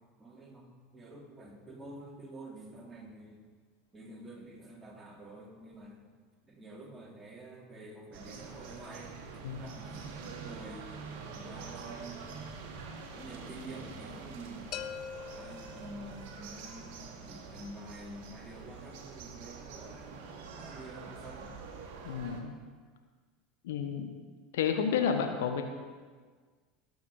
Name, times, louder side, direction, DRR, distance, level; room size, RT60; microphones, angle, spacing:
voice 1, 0.2-0.7 0.9-3.4 3.9-6.0 6.5-10.9 11.3-12.4 13.1-14.7 15.3-21.5 22.6-22.7, right 1 dB, 15° right, -2 dB, 3.1 m, -48 dB
sound 1, 8.1-22.4, right 5 dB, 55° right, 1.8 m, -46 dB
sound 2, 14.7-16.6, left 8 dB, 40° left, 0.7 m, -43 dB
voice 2, 22.0-22.6 23.6-24.1 24.5-25.6, left 7 dB, 65° left, 5 dB, 1.2 m, -31 dB
18.0 x 7.0 x 5.0 m, 1.5 s
figure-of-eight pair, 75°, 0 cm